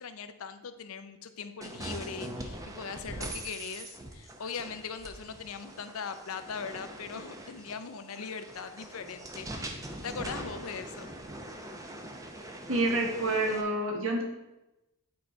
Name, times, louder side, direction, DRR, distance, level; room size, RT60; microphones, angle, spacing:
voice 1, 0.0-9.5 9.9-11.1, left 6 dB, 70° left, 10 dB, 0.5 m, -40 dB
sound 1, 1.6-13.6, right 1 dB, 15° right, 0.6 m, -42 dB
voice 2, 12.7-14.2, right 2 dB, 60° right, 0 dB, 1.5 m, -28 dB
8.7 x 4.1 x 4.4 m, 0.98 s
head